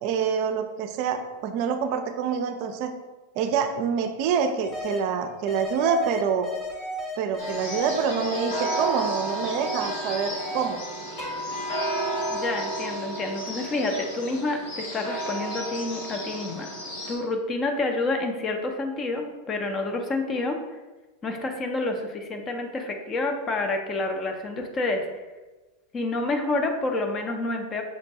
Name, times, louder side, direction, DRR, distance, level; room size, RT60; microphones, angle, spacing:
voice 1, 0.0-2.9 3.4-6.5 7.2-10.8, right 6 dB, 55° right, 6 dB, 0.4 m, -26 dB
sound 1, 4.6-5.0 5.5-10.8 11.2-12.9, equal, 45° left, 1.3 m, -35 dB
sound 2, 7.4-17.2, right 1 dB, 75° left, 0.8 m, -32 dB
voice 2, 12.3-16.7 17.1-20.6 21.2-25.1 25.9-27.8, left 2 dB, 30° left, 4 dB, 0.5 m, -28 dB
5.7 x 2.2 x 2.7 m, 1.2 s
hypercardioid pair, 105°, 0 cm